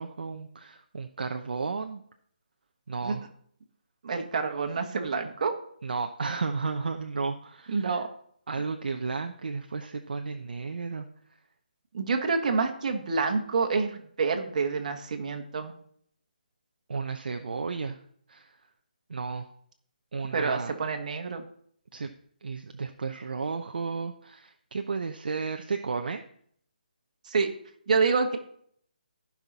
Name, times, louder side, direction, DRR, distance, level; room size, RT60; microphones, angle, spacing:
voice 1, 0.0-2.0 2.9-3.2 5.8-8.0 8.5-11.1 16.9-18.0 18.3-18.5 19.1-19.5 20.1-20.7 21.9-22.1 22.4-26.2, right 4 dB, 70° right, 6 dB, 0.8 m, -33 dB
voice 2, 4.0-5.5 7.7-8.1 11.9-15.7 20.3-21.4 27.2-27.5 27.9-28.4, right 4 dB, 50° right, 5 dB, 1.6 m, -27 dB
14.0 x 5.9 x 4.1 m, 0.63 s
hypercardioid pair, 155°, 5 cm